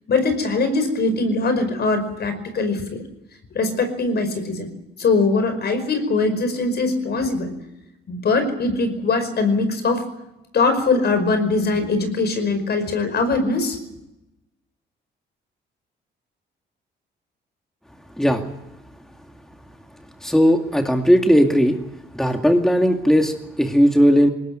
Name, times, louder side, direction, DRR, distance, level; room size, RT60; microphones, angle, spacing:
voice 1, 0.1-3.0 3.5-4.7 5.0-7.5 8.1-10.0 10.5-13.8, left 3 dB, 55° left, 9 dB, 5.2 m, -21 dB
voice 2, 20.2-21.8 22.1-24.3, equal, ahead, 4 dB, 2.2 m, -17 dB
21.0 x 18.5 x 9.2 m, 0.90 s
cardioid pair, 90°, 20 cm